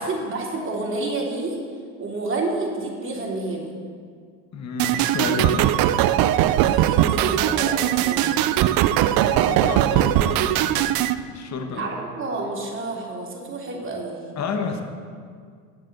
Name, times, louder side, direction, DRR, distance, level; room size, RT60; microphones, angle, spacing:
voice 1, 0.0-1.6 2.0-3.8 6.7-8.5 11.7-14.2, right 2 dB, 25° right, -3 dB, 3.2 m, -29 dB
voice 2, 4.5-5.8 9.1-10.8 11.3-11.9 14.4-14.8, left 4 dB, 35° left, 5 dB, 1.3 m, -30 dB
sound 1, 4.8-11.2, right 12 dB, 50° right, 0.6 m, -20 dB
10.0 x 7.4 x 6.7 m, 2.1 s
hypercardioid pair, 75°, 45 cm